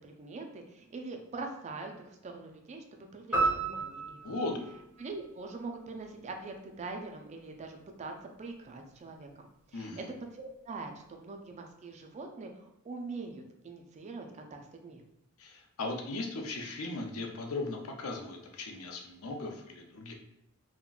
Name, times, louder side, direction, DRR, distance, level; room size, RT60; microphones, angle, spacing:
voice 1, 0.0-2.8 3.1-4.3 5.0-8.1 8.4-9.9 10.3-15.0, right 3 dB, 30° right, 3 dB, 0.3 m, -43 dB
sound 1, 3.3-5.8, right 3 dB, 5° right, 0.8 m, -33 dB
voice 2, 4.2-4.6 9.7-10.1 15.4-20.1, left 2 dB, 75° left, 3 dB, 0.5 m, -37 dB
3.6 x 2.1 x 2.3 m, 0.81 s
head